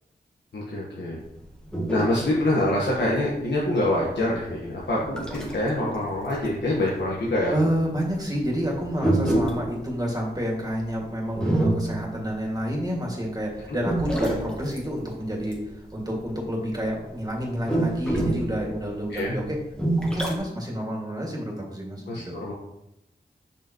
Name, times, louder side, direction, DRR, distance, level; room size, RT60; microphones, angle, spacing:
voice 1, 0.5-1.2 1.9-7.5 13.7-13.8 19.1-19.4 22.1-22.5, left 1 dB, 80° left, -5 dB, 1.3 m, -25 dB
sound 1, 1.2-5.7 6.0-13.0 13.4-16.8 17.1-20.4, right 1 dB, 5° left, 1.5 m, -27 dB
voice 2, 7.5-19.6 20.0-22.3, equal, 20° right, -2 dB, 2.1 m, -29 dB
6.7 x 5.8 x 3.0 m, 0.88 s
wide cardioid pair, 65°, 18 cm